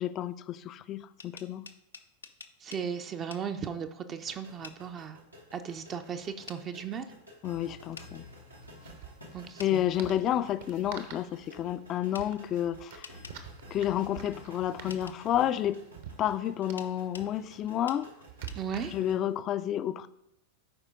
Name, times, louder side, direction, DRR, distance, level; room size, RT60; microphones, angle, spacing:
voice 1, 0.0-1.7 7.4-8.2 9.6-13.1 13.7-15.8 16.2-18.1 18.9-20.1, left 11 dB, 30° left, 14 dB, 0.4 m, -30 dB
sound 1, 1.0-2.9 3.3-3.5 4.6-4.8 6.5-6.6 8.0-8.1 9.6-9.7 12.1-12.3 13.0-13.4 14.9-15.2 16.8-17.3 17.9-18.0 18.5-18.6, left 5 dB, 75° left, 0.6 m, -47 dB
voice 2, 2.6-5.2 5.5-7.1 9.3-9.8 18.6-18.9, right 7 dB, 30° right, 7 dB, 0.6 m, -36 dB
sound 2, 4.2-19.1, left 1 dB, 85° right, 1.8 m, -52 dB
sound 3, 6.2-6.3 6.5-6.7 8.1-19.3, right 8 dB, 55° right, 1.0 m, -49 dB
12.5 x 4.9 x 3.7 m, 0.82 s
figure-of-eight pair, 90°, 0 cm